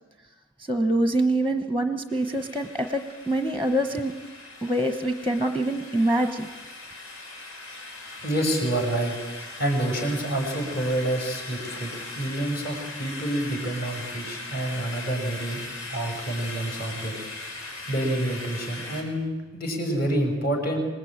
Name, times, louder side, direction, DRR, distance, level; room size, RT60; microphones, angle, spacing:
voice 1, 0.7-4.1 4.6-6.5, right 1 dB, 5° left, 7 dB, 1.1 m, -25 dB
sound 1, 2.1-19.0, left 2 dB, 85° left, 5.3 m, -39 dB
voice 2, 8.2-9.2 9.6-15.6 15.9-17.2 17.6-20.8, right 1 dB, 45° left, 3 dB, 5.9 m, -28 dB
26.5 x 19.5 x 8.9 m, 1.3 s
head